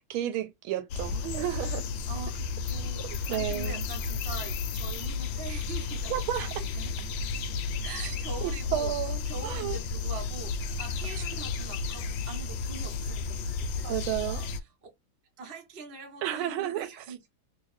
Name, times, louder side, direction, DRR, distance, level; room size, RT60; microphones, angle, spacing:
voice 1, 0.1-1.9 3.3-3.8 6.1-6.5 8.4-9.8 11.3-11.4 13.8-14.4 16.2-16.9, right 12 dB, 85° right, 1.4 m, -32 dB
sound 1, 0.9-14.6, left 4 dB, 75° left, 1.2 m, -33 dB
voice 2, 2.1-7.1 7.8-14.7 15.4-17.2, right 4 dB, 40° right, 1.1 m, -43 dB
3.1 x 2.7 x 3.2 m
omnidirectional pair, 2.2 m